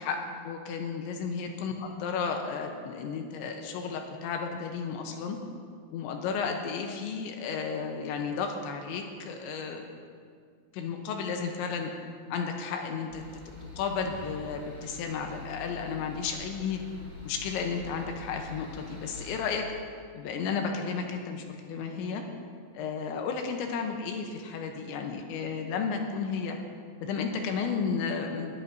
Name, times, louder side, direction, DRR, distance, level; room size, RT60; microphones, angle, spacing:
voice 1, 0.0-5.4 5.9-9.8 10.7-11.9 12.3-13.2 13.8-16.8 17.2-19.7 20.1-22.2 22.7-26.6 27.0-28.5, left 5 dB, 80° left, 3 dB, 3.1 m, -33 dB
sound 1, 13.1-19.4, left 3 dB, 5° left, 3.1 m, -44 dB
20.5 x 14.0 x 2.7 m, 2.1 s
omnidirectional pair, 5.3 m